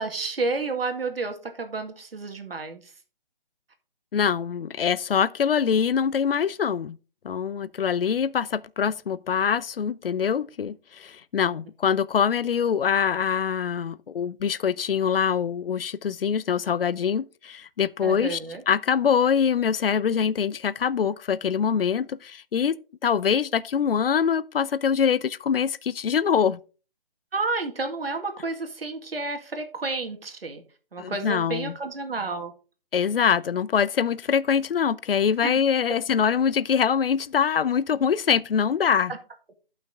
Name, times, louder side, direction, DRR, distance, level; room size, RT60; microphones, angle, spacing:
voice 1, 0.0-2.9 18.0-18.6 27.3-30.6 30.9-32.5 35.4-35.6, right 3 dB, 80° right, 2.1 m, -30 dB
voice 2, 4.1-7.0 7.2-18.4 18.7-22.8 23.0-26.6 31.0-31.8 32.9-39.1, left 7 dB, 75° left, 0.5 m, -24 dB
11.5 x 5.9 x 3.6 m
hypercardioid pair, 175°, 29 cm